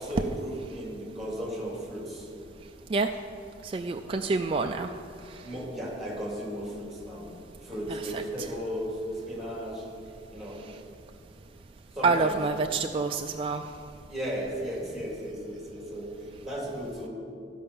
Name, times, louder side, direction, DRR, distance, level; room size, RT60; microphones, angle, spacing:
voice 1, 0.0-2.3 5.4-7.3 7.6-9.9 10.3-10.6 11.9-12.4 14.1-16.1 16.4-17.1, equal, ahead, -3 dB, 2.7 m, -35 dB
voice 2, 3.6-4.9 7.9-8.5 12.0-13.6, right 4 dB, 30° right, 4 dB, 0.3 m, -27 dB
13.0 x 5.5 x 6.9 m, 2.5 s
head